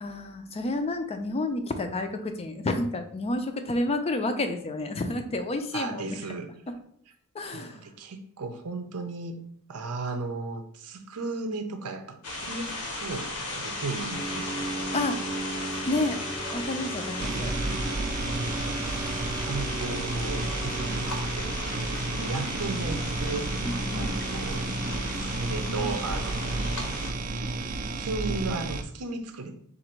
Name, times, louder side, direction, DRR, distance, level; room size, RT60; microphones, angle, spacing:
voice 1, 0.0-6.4 7.3-7.8 14.9-15.2 15.8-17.6 23.6-24.1, left 2 dB, 25° left, 7 dB, 0.4 m, -30 dB
voice 2, 5.7-6.5 7.5-9.4 9.7-14.7 18.8-19.2 19.4-23.5 23.9-24.7 25.1-27.0 28.0-29.6, right 3 dB, 90° right, 7 dB, 0.6 m, -35 dB
sound 1, 12.2-27.1, left 2 dB, 85° left, 0.9 m, -36 dB
sound 2, 14.1-27.3, right 2 dB, 15° right, 0.7 m, -38 dB
sound 3, 17.2-28.8, right 2 dB, 40° right, 0.3 m, -31 dB
3.9 x 2.6 x 4.3 m, 0.65 s
head